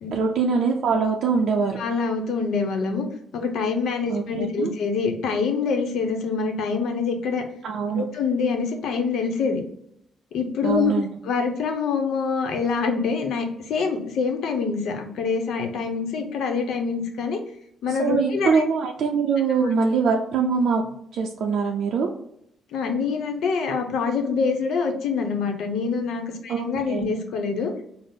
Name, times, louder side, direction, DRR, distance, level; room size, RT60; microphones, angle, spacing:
voice 1, 0.1-1.8 4.1-4.7 7.6-8.0 10.6-11.1 17.9-22.1 26.5-27.1, right 5 dB, 75° right, 0 dB, 0.4 m, -23 dB
voice 2, 1.8-3.0 3.3-7.4 7.9-9.6 10.3-10.9 11.2-17.4 17.8-18.6 22.7-27.7, left 5 dB, 75° left, 4 dB, 0.7 m, -25 dB
4.0 x 2.0 x 3.5 m, 0.72 s
cardioid pair, 90°, 0 cm